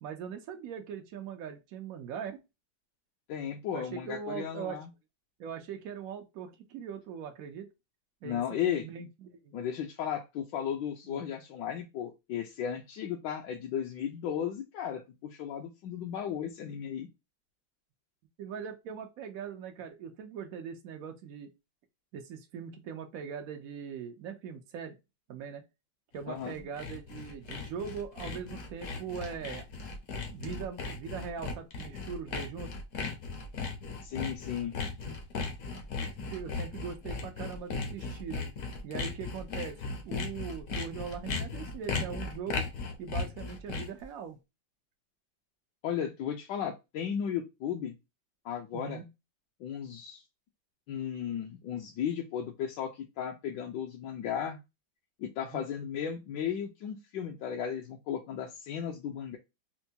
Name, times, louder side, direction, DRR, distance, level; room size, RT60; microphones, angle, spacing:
voice 1, 0.0-2.4 3.7-4.8 5.4-7.7 8.2-9.5 11.1-11.2 18.4-21.5 22.1-25.0 25.3-25.6 26.1-29.6 30.3-32.7 35.9-38.4 38.8-39.7 40.0-42.6 43.0-44.4 48.7-49.1 55.5-55.6, right 7 dB, 85° right, 0.7 m, -41 dB
voice 2, 3.3-4.9 8.2-8.8 9.5-17.1 26.3-26.7 34.0-34.7 45.8-47.9 48.4-49.0 49.6-50.2 50.9-54.6 55.2-59.4, left 8 dB, 75° left, 1.2 m, -35 dB
Sawing, 26.2-44.0, left 4 dB, 60° left, 0.9 m, -37 dB
4.4 x 2.2 x 2.7 m
omnidirectional pair, 2.1 m